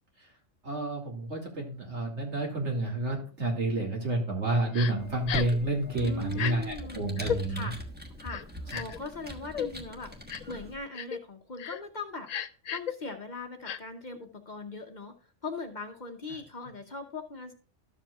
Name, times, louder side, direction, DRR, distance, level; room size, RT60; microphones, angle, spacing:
voice 1, 0.6-7.7 8.7-8.8, right 2 dB, 65° right, 0 dB, 2.6 m, -30 dB
Crying sobbing, 4.7-4.9 5.3-5.6 6.3-6.5 7.2-7.4 8.3-9.0 9.5-9.7 10.3-10.5 10.9-11.2 11.6-11.8 12.3-12.9 13.6-13.8, left 8 dB, 85° left, 0.3 m, -33 dB
Computer keyboard, 5.0-10.8, left 1 dB, 10° right, 1.1 m, -42 dB
voice 2, 6.0-7.1 7.5-7.7 8.2-12.3 12.7-15.1 15.4-17.5, left 3 dB, 40° left, 5 dB, 0.9 m, -40 dB
12.5 x 7.4 x 2.4 m, 0.39 s
omnidirectional pair, 1.3 m